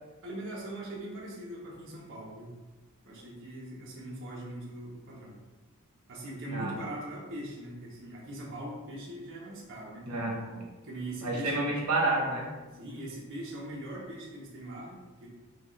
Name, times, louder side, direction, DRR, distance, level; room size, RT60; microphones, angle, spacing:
voice 1, 0.2-2.5 3.0-5.4 6.1-10.1 10.8-11.7 12.7-15.3, right 1 dB, 60° right, -5 dB, 1.0 m, -41 dB
voice 2, 10.1-10.6 11.2-12.5, right 2 dB, 90° right, -2 dB, 1.0 m, -29 dB
6.2 x 2.4 x 3.1 m, 1.2 s
head